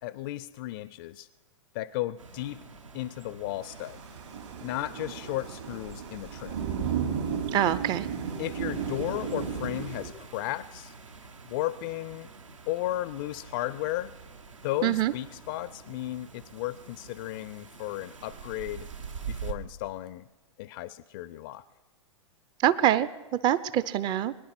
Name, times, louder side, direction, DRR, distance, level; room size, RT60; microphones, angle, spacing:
voice 1, 0.0-1.3 1.7-2.6 2.9-4.0 4.6-6.6 8.4-10.9 11.4-12.3 12.7-14.1 14.6-18.9 19.3-20.3 20.6-21.7, left 15 dB, 40° left, 18 dB, 0.5 m, -34 dB
sound 1, 2.2-19.5, right 6 dB, 80° right, 1.4 m, -46 dB
Thunder / Rain, 3.6-10.1, right 7 dB, 65° right, 3.5 m, -34 dB
voice 2, 7.5-8.1 14.8-15.1 22.6-23.1 23.4-24.3, right 12 dB, 25° right, 16 dB, 0.6 m, -24 dB
22.0 x 10.5 x 6.0 m, 1.2 s
figure-of-eight pair, 105°, 16 cm